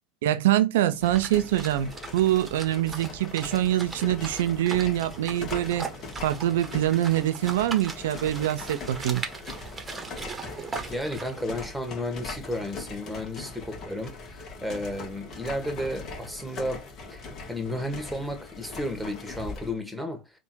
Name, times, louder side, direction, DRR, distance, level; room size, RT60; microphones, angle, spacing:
voice 1, 0.2-5.9 6.2-9.2, right 13 dB, 80° right, 0.4 m, -24 dB
sound 1, 0.9-19.8, left 3 dB, 50° left, 1.4 m, -41 dB
sound 2, 1.0-11.4, right 4 dB, 20° right, 1.0 m, -40 dB
voice 2, 10.9-20.4, left 1 dB, ahead, 1.4 m, -33 dB
3.5 x 2.5 x 4.4 m
hypercardioid pair, 85°, 0 cm